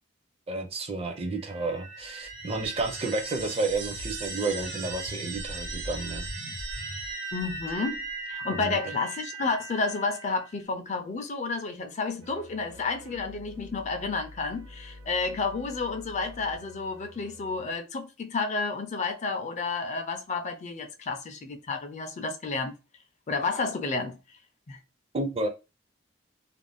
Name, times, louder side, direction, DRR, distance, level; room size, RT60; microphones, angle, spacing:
voice 1, 0.5-6.3 8.5-8.8 25.1-25.5, right 3 dB, 30° right, 0.4 m, -31 dB
sound 1, 1.2-10.5, right 2 dB, 90° right, 1.1 m, -38 dB
voice 2, 7.3-8.0 8.3-22.7 23.3-24.2 24.7-24.8, left 4 dB, 35° left, 0.4 m, -31 dB
sound 2, 12.2-17.7, left 1 dB, 65° right, 0.8 m, -47 dB
2.4 x 2.1 x 3.3 m
head